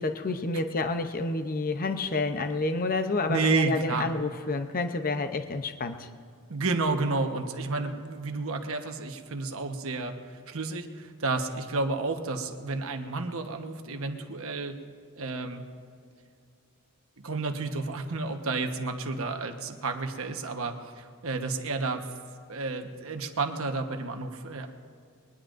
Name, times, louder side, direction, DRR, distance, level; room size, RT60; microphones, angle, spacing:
voice 1, 0.0-6.1, left 3 dB, 40° left, 7 dB, 0.7 m, -29 dB
voice 2, 3.3-4.1 6.5-14.8 15.2-15.6 17.2-22.0 22.5-24.7, right 3 dB, 70° right, 5 dB, 1.2 m, -31 dB
22.0 x 20.0 x 2.6 m, 2.2 s
head